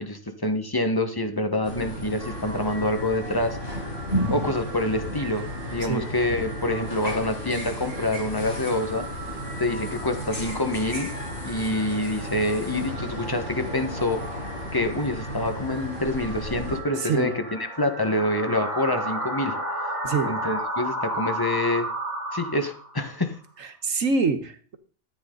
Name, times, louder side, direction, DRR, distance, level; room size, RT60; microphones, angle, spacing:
voice 1, 0.0-3.6 4.3-9.1 9.6-11.1 11.4-14.2 14.7-19.5 20.3-21.9 22.3-23.4, left 1 dB, 20° left, 7 dB, 1.3 m, -26 dB
sound 1, 1.6-16.8, equal, 50° left, 5.0 m, -34 dB
sound 2, 2.2-20.6, right 2 dB, 40° right, 2.7 m, -41 dB
voice 2, 17.0-17.3 20.0-20.3 23.6-24.8, right 4 dB, 85° right, 8 dB, 1.8 m, -25 dB
sound 3, 18.0-23.1, right 1 dB, 10° right, 2.2 m, -30 dB
14.0 x 9.0 x 4.0 m, 0.43 s
omnidirectional pair, 1.3 m